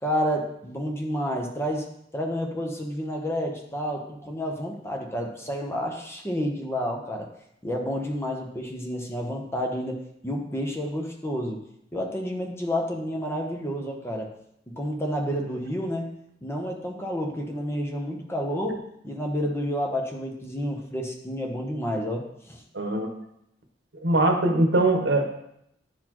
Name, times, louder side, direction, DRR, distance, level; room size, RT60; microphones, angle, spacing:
voice 1, 0.0-7.3 7.6-11.6 11.9-14.3 14.8-16.1 16.4-22.6, equal, 15° left, 1 dB, 0.9 m, -30 dB
voice 2, 22.7-23.1 24.0-25.2, right 2 dB, 75° right, 3 dB, 0.9 m, -21 dB
10.0 x 4.1 x 3.0 m, 0.76 s
head